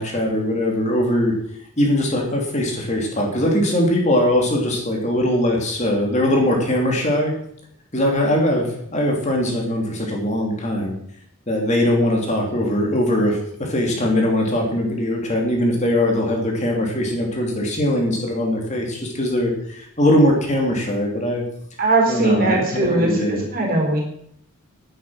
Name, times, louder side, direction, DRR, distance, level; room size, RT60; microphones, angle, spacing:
voice 1, 0.0-1.3 1.8-7.3 7.9-10.9 11.5-21.4 22.1-23.4, left 1 dB, 30° left, 0 dB, 2.8 m, -21 dB
voice 2, 21.8-24.0, right 2 dB, 40° right, 1 dB, 4.0 m, -20 dB
11.0 x 10.0 x 6.4 m, 0.69 s
head